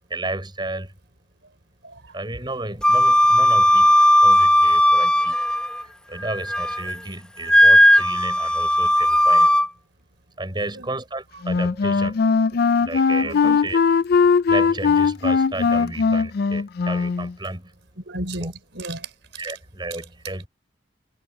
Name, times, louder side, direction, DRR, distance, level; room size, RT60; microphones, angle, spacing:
voice 1, 0.1-0.9 2.1-5.4 5.8-9.6 10.4-13.8 14.5-17.7 18.4-18.5 19.4-20.5, right 2 dB, 25° right, 6.2 m, -33 dB
voice 2, 1.8-2.2 10.6-10.9 13.2-13.6 18.0-19.5, right 1 dB, 70° right, 4.7 m, -34 dB
Wind instrument woodwind instrument, 2.8-5.8 6.2-6.9 7.5-9.7, equal, 5° left, 0.8 m, -16 dB
Wind instrument woodwind instrument 2, 11.4-17.3, left 5 dB, 55° left, 0.4 m, -19 dB
head